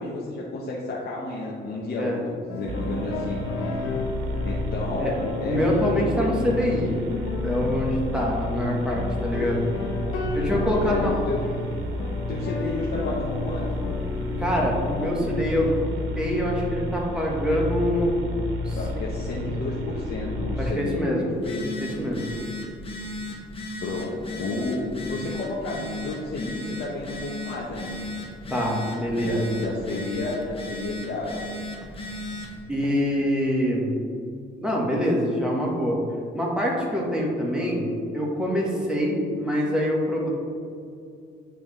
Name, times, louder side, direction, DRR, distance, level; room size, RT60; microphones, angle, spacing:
voice 1, 0.0-3.8 4.4-6.5 10.8-11.5 12.3-13.7 18.7-21.7 23.8-28.0 29.2-31.4, left 2 dB, 55° left, -3 dB, 0.9 m, -31 dB
sound 1, 2.5-15.8, left 3 dB, 85° left, 0.7 m, -34 dB
sound 2, 2.7-20.7, left 1 dB, 85° right, 0.7 m, -31 dB
voice 2, 5.5-7.0 7.4-9.7 10.3-11.1 14.4-15.8 16.2-18.2 18.6-19.1 20.6-21.3 22.0-22.3 28.5-29.6 32.7-34.0 34.6-36.0 36.3-37.9 38.1-40.3, equal, 5° right, -3 dB, 1.5 m, -25 dB
Telephone, 21.3-32.6, left 1 dB, 30° left, 1.0 m, -36 dB
9.0 x 3.4 x 3.3 m, 2.4 s
cardioid pair, 90°, 20 cm